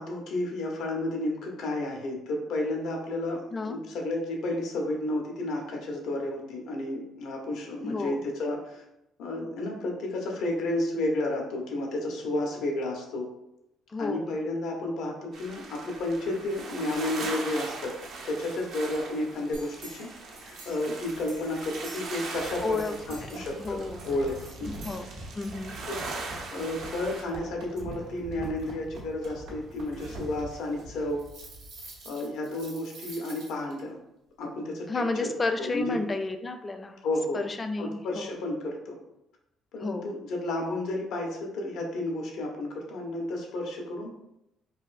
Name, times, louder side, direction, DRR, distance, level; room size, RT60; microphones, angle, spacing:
voice 1, 0.0-8.8 9.2-13.3 14.0-17.9 18.2-20.1 20.7-24.8 25.9-26.0 26.5-31.2 32.0-34.0 34.4-35.3 35.6-36.0 37.0-37.4 37.8-39.0 39.7-44.1, left 1 dB, 75° left, 1 dB, 0.8 m, -32 dB
voice 2, 7.8-8.2 13.9-14.3 22.6-22.9 23.3-24.0 24.8-25.7 34.9-37.0 37.3-38.3 39.8-40.2, left 3 dB, 30° left, 7 dB, 0.4 m, -32 dB
sound 1, 15.3-27.2, right 3 dB, 70° right, 0.6 m, -40 dB
sound 2, 19.5-33.8, right 1 dB, 90° right, 1.1 m, -44 dB
4.1 x 2.5 x 2.5 m, 0.86 s
supercardioid pair, 70°, 0 cm